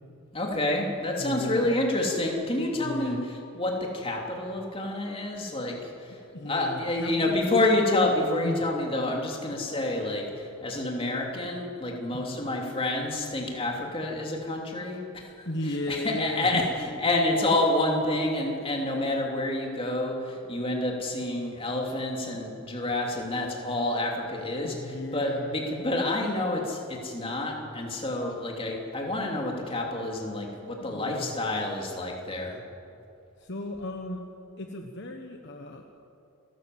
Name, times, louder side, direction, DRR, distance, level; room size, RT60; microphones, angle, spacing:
voice 1, 0.3-3.2 3.5-6.2 6.4-15.2 15.9-24.7 25.1-32.6, left 2 dB, 25° left, 0 dB, 3.0 m, -28 dB
voice 2, 1.2-1.7 2.7-3.3 6.3-7.4 8.4-8.6 12.1-12.4 15.4-16.6 24.6-25.6 30.8-31.4 33.4-34.2 34.6-36.0, left 1 dB, 50° left, 4 dB, 1.2 m, -35 dB
28.0 x 13.0 x 7.9 m, 2.7 s
head